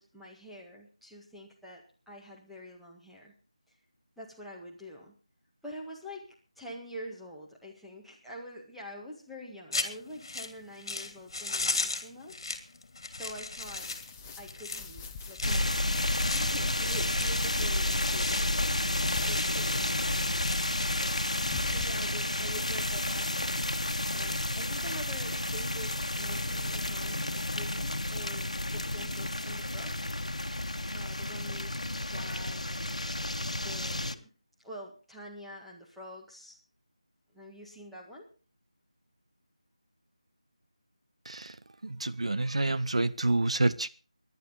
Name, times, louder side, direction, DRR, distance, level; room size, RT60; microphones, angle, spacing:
voice 1, 0.0-3.3 4.2-5.1 5.6-12.4 13.1-13.9 14.4-15.8 16.3-18.9 19.3-19.9 21.6-23.8 24.1-30.0 30.9-34.3 34.6-36.6 37.3-38.3, equal, ahead, -5 dB, 1.7 m, -46 dB
sound 1, 9.7-22.1, left 3 dB, 45° left, 2.5 m, -38 dB
sound 2, 13.6-21.9, left 5 dB, 15° left, 1.0 m, -45 dB
sound 3, 15.4-34.1, left 1 dB, 80° left, 1.3 m, -31 dB
voice 2, 41.8-43.9, right 2 dB, 65° right, 13 dB, 0.8 m, -28 dB
21.5 x 11.0 x 3.9 m, 0.35 s
figure-of-eight pair, 165°, 4 cm